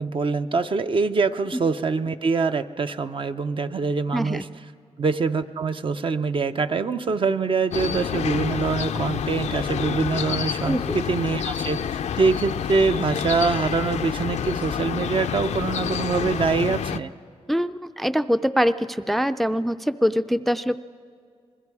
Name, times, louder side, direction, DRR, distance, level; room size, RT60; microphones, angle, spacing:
voice 1, 0.0-4.4 5.0-11.8 12.2-17.1, right 4 dB, 50° right, 9 dB, 0.7 m, -24 dB
voice 2, 4.1-4.4 10.6-11.0 17.5-20.8, equal, ahead, 11 dB, 0.4 m, -23 dB
sound 1, 7.7-17.0, left 8 dB, 90° left, 0.5 m, -28 dB
26.5 x 21.0 x 4.8 m, 2.2 s
wide cardioid pair, 95°, 11 cm